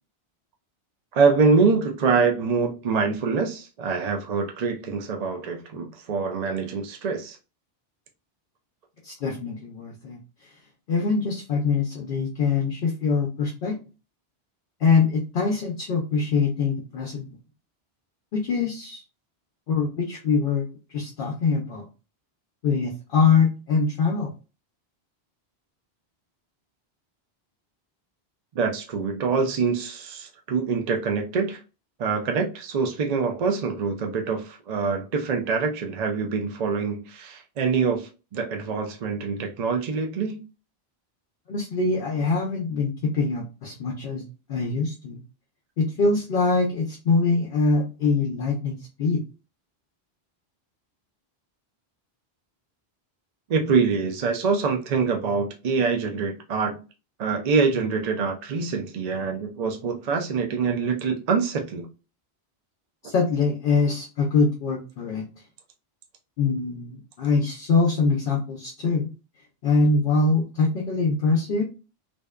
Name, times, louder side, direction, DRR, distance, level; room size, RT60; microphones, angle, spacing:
voice 1, 1.1-7.4 28.6-31.6 32.0-40.4 53.5-56.8 57.2-61.9, right 5 dB, 55° right, 0.5 m, -25 dB
voice 2, 9.0-10.2 10.9-13.8 14.8-17.3 18.3-19.0 19.7-21.9 22.6-24.3 41.5-44.2 44.5-45.2 45.8-49.2 63.0-65.2 66.4-69.1 69.6-71.6, left 4 dB, 65° left, 0.7 m, -23 dB
2.6 x 2.1 x 2.2 m
omnidirectional pair, 1.1 m